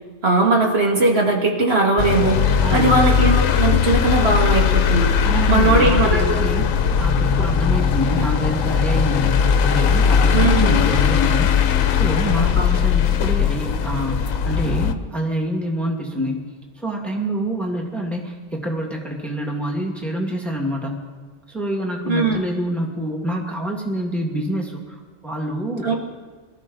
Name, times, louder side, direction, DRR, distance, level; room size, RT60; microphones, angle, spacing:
voice 1, 0.2-5.1 5.5-6.4 10.3-10.8 12.4-12.7 22.0-22.4 25.8-25.9, right 3 dB, 50° right, -1 dB, 1.9 m, -19 dB
sound 1, 2.0-14.9, left 7 dB, 85° left, 1.1 m, -19 dB
voice 2, 2.6-2.9 5.2-6.7 7.0-16.4 16.8-21.0 21.5-25.9, right 1 dB, ahead, 0 dB, 1.8 m, -26 dB
23.0 x 13.0 x 4.0 m, 1.4 s
omnidirectional pair, 1.4 m